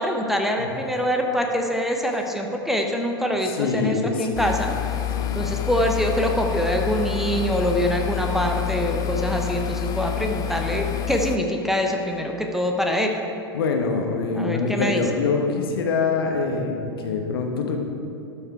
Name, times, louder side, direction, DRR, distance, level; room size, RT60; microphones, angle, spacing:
voice 1, 0.0-4.7 5.3-13.2 14.3-15.0, equal, ahead, 2 dB, 0.8 m, -24 dB
voice 2, 3.5-4.5 5.1-5.4 13.5-17.8, left 4 dB, 65° left, 3 dB, 1.0 m, -25 dB
sound 1, 4.3-11.4, left 11 dB, 30° left, 0.5 m, -28 dB
12.5 x 5.5 x 4.5 m, 2.9 s
figure-of-eight pair, 85°, 13 cm